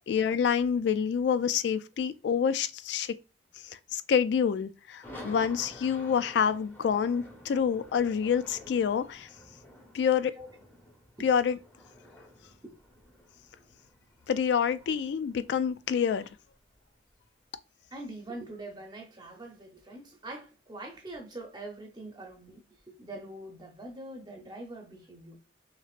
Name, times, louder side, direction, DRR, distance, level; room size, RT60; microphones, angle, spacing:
voice 1, 0.1-3.2 3.6-9.3 9.9-10.3 11.2-11.6 14.3-16.3, left 7 dB, 70° left, 0.3 m, -27 dB
sound 1, 5.0-17.2, left 1 dB, 10° left, 1.1 m, -51 dB
voice 2, 17.9-25.3, right 2 dB, 25° right, 0.8 m, -43 dB
5.9 x 2.8 x 2.5 m
head